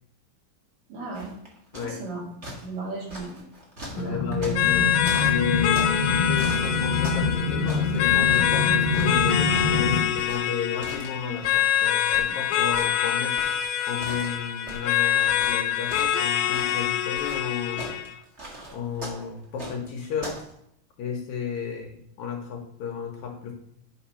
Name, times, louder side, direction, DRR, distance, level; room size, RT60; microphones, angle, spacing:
voice 1, 0.9-1.3 1.8-2.4 2.6-3.4 3.9-4.3 5.6-5.7, right 3 dB, 80° right, -2 dB, 3.8 m, -35 dB
sound 1, 1.1-2.1 2.4-6.0 6.4-7.3 7.6-11.8 12.1-20.5, right 1 dB, 35° right, 1.2 m, -40 dB
voice 2, 3.9-4.9 5.3-13.5 13.9-17.8 18.7-20.4 21.0-23.5, left 7 dB, 70° left, 2 dB, 2.0 m, -33 dB
sound 2, 3.9-10.0, left 3 dB, 50° left, 1.5 m, -26 dB
sound 3, 4.6-18.1, left 10 dB, 85° left, 1.6 m, -25 dB
10.0 x 3.6 x 5.6 m, 0.71 s
omnidirectional pair, 4.0 m